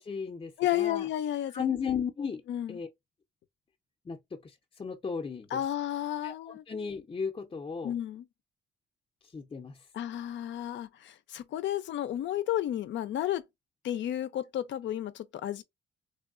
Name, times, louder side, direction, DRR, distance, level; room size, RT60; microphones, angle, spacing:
voice 1, 0.0-1.1 1.5-2.4 2.7-2.9 4.0-5.6 6.2-7.9 9.2-9.9, left 6 dB, 25° left, 0.6 m, -35 dB
voice 2, 0.6-1.7 2.5-2.8 5.5-6.6 7.8-8.2 9.9-13.4 13.8-15.6, left 12 dB, 65° left, 0.5 m, -32 dB
3.4 x 2.2 x 2.3 m
cardioid pair, 90°, 20 cm